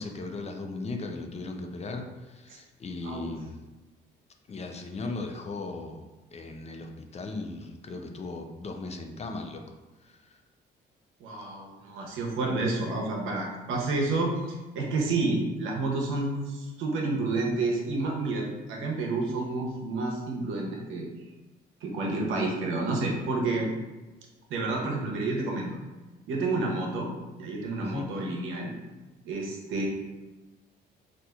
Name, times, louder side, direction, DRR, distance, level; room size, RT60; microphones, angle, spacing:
voice 1, 0.0-3.6 4.5-6.0 6.3-9.7 10.0-10.3 27.8-28.1, left 3 dB, 35° left, 4 dB, 0.4 m, -37 dB
voice 2, 11.2-21.1 21.8-23.7 24.5-25.7 26.3-27.1 27.4-28.7 29.2-29.9, right 2 dB, 85° right, -1 dB, 0.7 m, -29 dB
4.2 x 2.5 x 2.4 m, 1.2 s
cardioid pair, 90°, 20 cm